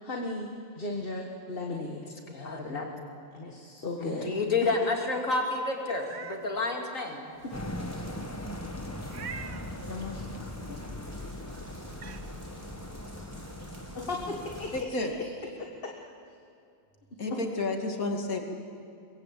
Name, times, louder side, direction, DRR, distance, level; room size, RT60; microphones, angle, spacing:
voice 1, 0.0-0.5 0.8-2.1 2.4-2.8 3.3-4.3 4.6-4.7 7.4-7.5 9.9-10.8 14.0-15.3 15.6-16.1 17.3-17.4, left 2 dB, 40° left, 1 dB, 1.8 m, -36 dB
voice 2, 2.3-2.9 4.0-7.3, left 3 dB, 70° left, 2 dB, 3.2 m, -30 dB
Meow, 5.9-6.4 6.9-7.0 9.1-9.7 11.3-11.4 11.9-12.2, right 6 dB, 55° right, 1.1 m, -42 dB
sound 1, 7.3-14.8, right 1 dB, 30° right, 2.9 m, -49 dB
sound 2, 7.5-14.8, left 1 dB, 15° left, 1.1 m, -40 dB
voice 3, 14.7-15.1 17.2-18.4, left 2 dB, 90° left, 3 dB, 2.8 m, -31 dB
23.0 x 21.0 x 8.5 m, 2.5 s
omnidirectional pair, 1.4 m